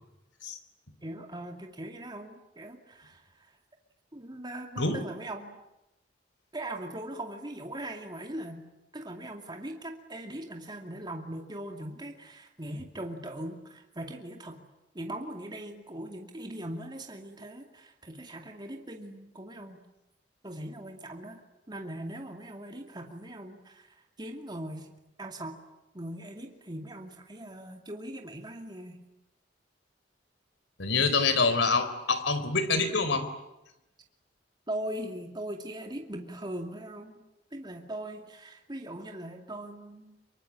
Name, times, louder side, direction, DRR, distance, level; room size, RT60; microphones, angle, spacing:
voice 1, 1.0-3.6 4.1-5.6 6.5-8.6 8.9-14.6 14.9-19.8 20.4-24.9 25.2-25.6 25.9-29.0 34.7-37.2 37.5-40.3, right 1 dB, 25° right, 3 dB, 2.5 m, -40 dB
voice 2, 30.8-33.3, left 4 dB, 75° left, 11 dB, 3.9 m, -26 dB
25.5 x 23.5 x 10.0 m, 0.91 s
head